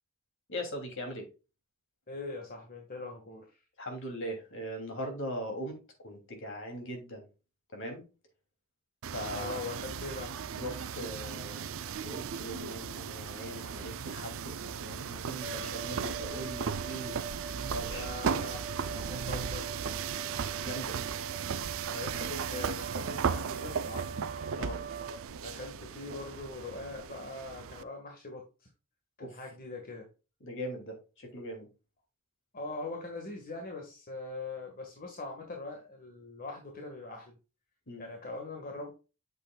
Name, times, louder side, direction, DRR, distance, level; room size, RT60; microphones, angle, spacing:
voice 1, 0.5-1.3 3.8-7.3 7.7-8.0 9.1-9.6 10.6-17.2 17.7-18.1 20.6-21.0 24.6-24.8 29.2-29.4 30.4-31.7 37.9-38.0, equal, 60° left, 3 dB, 2.9 m, -40 dB
voice 2, 2.1-3.6 9.3-10.4 17.9-20.0 21.8-24.3 25.4-28.7 29.2-30.1 32.5-37.4 38.0-38.9, left 3 dB, 40° left, 1 dB, 1.7 m, -42 dB
sound 1, 9.0-27.8, right 6 dB, 65° right, 0.5 m, -36 dB
sound 2, 15.4-25.2, right 4 dB, 35° right, 1.0 m, -43 dB
8.3 x 6.8 x 2.3 m, 0.31 s
head